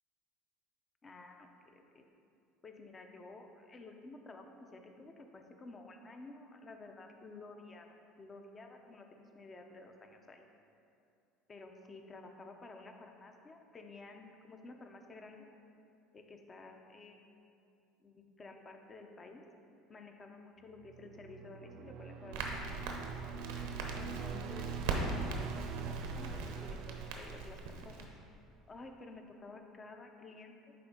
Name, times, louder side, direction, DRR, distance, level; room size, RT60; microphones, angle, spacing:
voice 1, 1.0-2.0 2.6-7.9 8.2-10.4 11.5-15.5 16.1-17.5 18.0-19.4 19.9-22.8 23.9-27.6 27.8-28.1 28.7-30.7, left 3 dB, 30° left, 4 dB, 0.7 m, -52 dB
sound 1, 20.8-28.1, right 6 dB, 60° right, 0.3 m, -44 dB
Crackle, 22.3-28.0, right 3 dB, 85° right, 0.8 m, -40 dB
9.5 x 3.5 x 3.7 m, 2.5 s
supercardioid pair, 90°, 0 cm